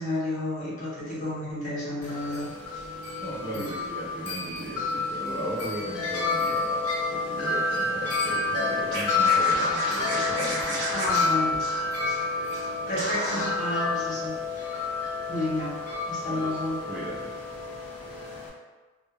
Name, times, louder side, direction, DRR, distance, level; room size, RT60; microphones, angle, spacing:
voice 1, 0.0-2.5 3.5-3.7 10.9-11.6 12.9-14.9 15.3-15.8 16.1-16.8, left 1 dB, 35° left, -8 dB, 0.8 m, -31 dB
Wind chime, 2.0-18.5, left 3 dB, 85° left, 0.5 m, -29 dB
Organ, 2.4-13.4, right 5 dB, 85° right, 0.3 m, -48 dB
voice 2, 3.2-10.9 16.2-16.6 16.9-17.4, equal, 10° right, -10 dB, 0.4 m, -36 dB
Scratching (performance technique), 8.9-12.2 12.5-12.7 13.0-13.5, right 1 dB, 55° right, 0.7 m, -32 dB
2.2 x 2.1 x 3.0 m, 1.3 s
head